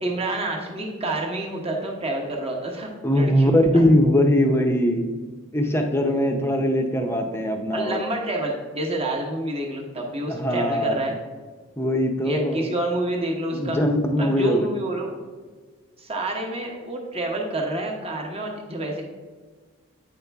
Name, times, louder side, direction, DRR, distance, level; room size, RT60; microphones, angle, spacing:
voice 1, 0.0-3.8 7.7-11.1 12.2-13.8 14.2-15.1 16.0-19.0, right 1 dB, 25° right, 1 dB, 1.0 m, -28 dB
voice 2, 3.0-5.1 5.5-8.0 10.3-11.1 11.8-12.7 13.5-14.7, equal, 10° left, 4 dB, 0.6 m, -21 dB
8.9 x 5.3 x 3.4 m, 1.5 s
head